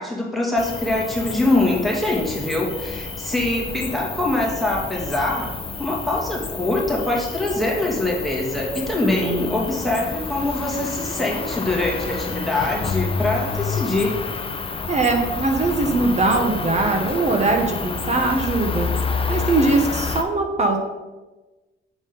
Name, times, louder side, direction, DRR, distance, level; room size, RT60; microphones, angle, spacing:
voice 1, 0.0-5.5 5.8-14.2, left 2 dB, ahead, -4 dB, 2.2 m, -23 dB
Cricket, 0.6-20.2, left 4 dB, 30° left, 0.5 m, -29 dB
voice 2, 9.0-9.7 14.9-18.9 19.3-20.8, right 3 dB, 35° right, 3 dB, 1.1 m, -21 dB
7.2 x 4.1 x 5.3 m, 1.2 s
cardioid pair, 90°, 20 cm